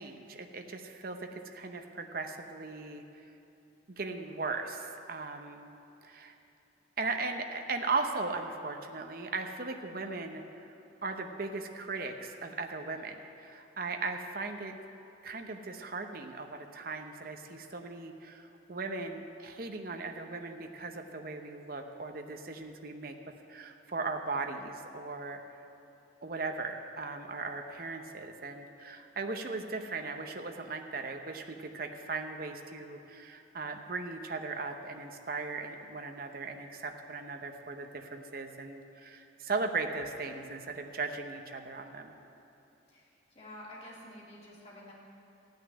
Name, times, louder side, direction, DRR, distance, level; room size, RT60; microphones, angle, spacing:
voice 1, 0.0-3.0 3.9-5.7 6.0-6.3 7.0-10.7 11.0-14.7 15.2-23.1 23.5-25.4 26.2-42.1, right 3 dB, 50° right, 4 dB, 0.8 m, -38 dB
voice 2, 42.9-44.9, left 1 dB, 35° left, -6 dB, 2.9 m, -49 dB
14.5 x 6.6 x 9.6 m, 2.8 s
head